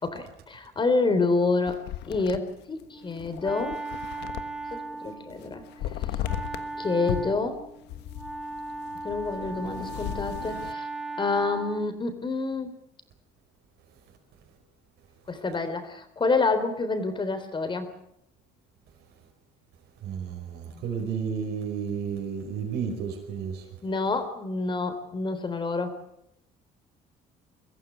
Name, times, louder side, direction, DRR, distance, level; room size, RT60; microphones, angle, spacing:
voice 1, 0.0-3.8 4.7-5.6 6.8-7.6 9.0-10.9 11.2-12.7 15.3-17.9 23.8-26.0, left 3 dB, 30° left, 10 dB, 3.9 m, -28 dB
sound 1, 1.7-4.8 5.1-6.7 7.1-10.7, left 11 dB, 85° left, 1.4 m, -36 dB
Wind instrument woodwind instrument, 2.9-12.0, right 2 dB, 5° right, 2.7 m, -38 dB
voice 2, 20.0-23.6, right 7 dB, 75° right, 1 dB, 5.2 m, -32 dB
23.5 x 15.0 x 9.8 m, 0.78 s
cardioid pair, 110°, 17 cm